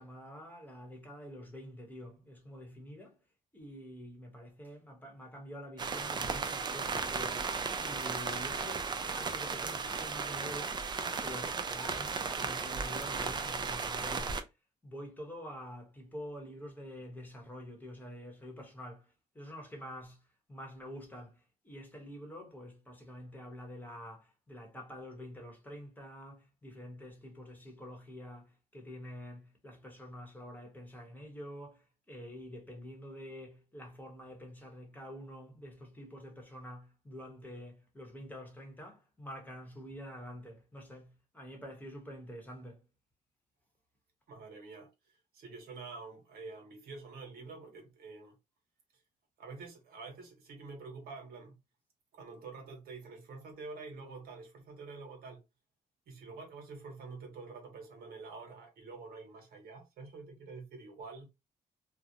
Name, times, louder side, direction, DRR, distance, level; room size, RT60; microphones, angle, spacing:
voice 1, 0.0-3.2 3.5-7.5 7.8-14.6 14.8-42.8, equal, 10° left, 0.8 m, -47 dB
sound 1, 5.8-14.4, right 5 dB, 30° right, 0.3 m, -35 dB
voice 2, 44.3-48.4 49.4-51.5 52.1-55.4 56.1-61.3, right 4 dB, 80° right, 0.9 m, -47 dB
2.4 x 2.0 x 2.7 m
cardioid pair, 100°, 15 cm